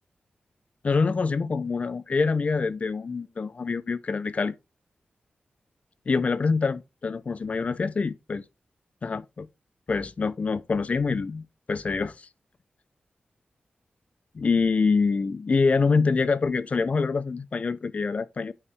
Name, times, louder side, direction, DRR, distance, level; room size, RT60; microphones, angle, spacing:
voice 1, 0.8-4.5 6.1-8.4 9.0-9.5 9.9-12.3 14.3-18.5, left 4 dB, 45° left, 0.4 m, -25 dB
8.6 x 4.7 x 3.4 m
wide cardioid pair, 135°, 3 cm